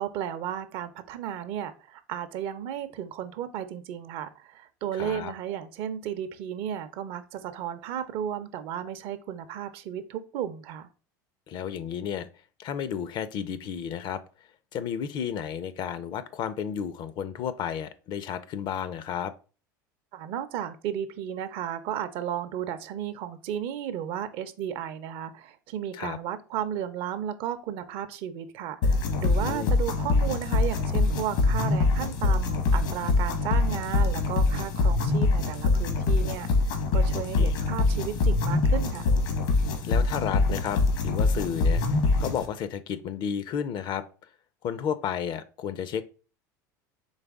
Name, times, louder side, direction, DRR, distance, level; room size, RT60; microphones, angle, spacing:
voice 1, 0.0-10.9 20.1-36.5 36.9-39.1, right 10 dB, 60° right, 0.5 m, -34 dB
voice 2, 5.0-5.3 11.5-12.3 12.6-14.2 14.7-19.3 25.9-26.2 29.4-29.7 37.1-37.5 39.8-44.0 44.6-46.0, left 8 dB, 50° left, 0.4 m, -32 dB
sound 1, 28.8-42.4, left 3 dB, 65° left, 1.0 m, -24 dB
4.0 x 3.3 x 3.5 m
hypercardioid pair, 85°, 10 cm